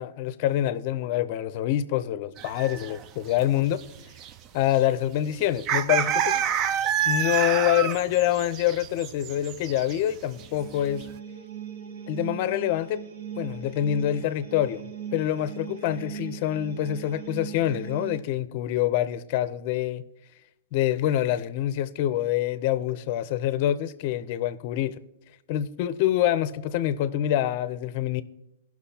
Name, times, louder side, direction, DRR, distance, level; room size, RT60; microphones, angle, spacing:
voice 1, 0.0-3.8 4.5-6.4 7.1-11.0 12.1-13.0 13.4-20.0 20.7-25.0 25.5-28.2, left 12 dB, 45° left, 0.5 m, -26 dB
sound 1, 2.4-3.0 3.3-3.4 3.8-4.3 4.6-4.8 5.6-10.0 10.3-10.5 10.8-11.0, right 8 dB, 30° right, 0.4 m, -28 dB
sound 2, 10.3-18.2, right 8 dB, 85° right, 0.9 m, -39 dB
17.0 x 6.0 x 2.8 m
hypercardioid pair, 150°, 0 cm